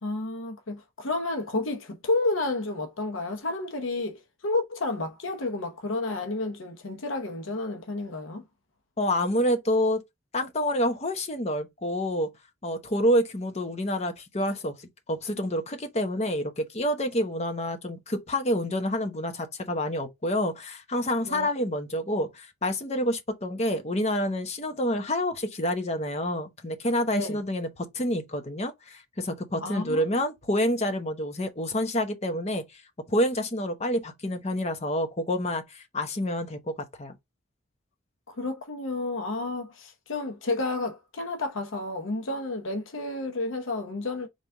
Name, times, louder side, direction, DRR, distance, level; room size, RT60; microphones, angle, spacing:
voice 1, 0.0-8.4 21.2-21.5 27.1-27.4 29.6-30.0 38.3-44.3, left 2 dB, 90° left, 0.9 m, -31 dB
voice 2, 9.0-10.0 10.3-12.3 12.6-32.8 33.1-37.1, equal, 35° left, 0.9 m, -28 dB
4.0 x 3.4 x 3.5 m
head